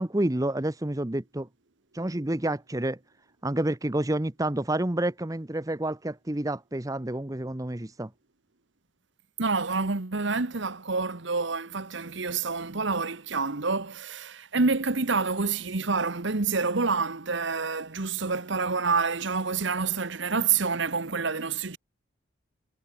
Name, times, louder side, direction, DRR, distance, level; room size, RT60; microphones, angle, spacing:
voice 1, 0.0-1.5 1.9-3.0 3.4-8.1, right 1 dB, 15° right, 0.8 m, -29 dB
voice 2, 9.4-21.8, right 4 dB, 60° right, 1.2 m, -28 dB
head